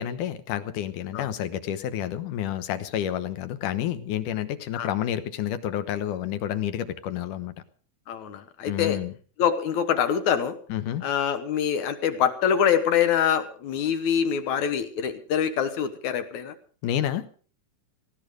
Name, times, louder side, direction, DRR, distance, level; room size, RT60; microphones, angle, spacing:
voice 1, 0.0-7.5 8.7-9.1 10.7-11.1 16.8-17.3, left 11 dB, 85° left, 11 dB, 2.7 m, -29 dB
voice 2, 8.1-9.0 9.4-10.6 11.0-16.5, left 8 dB, 70° left, 10 dB, 2.5 m, -25 dB
17.5 x 14.5 x 5.1 m, 0.41 s
omnidirectional pair, 3.6 m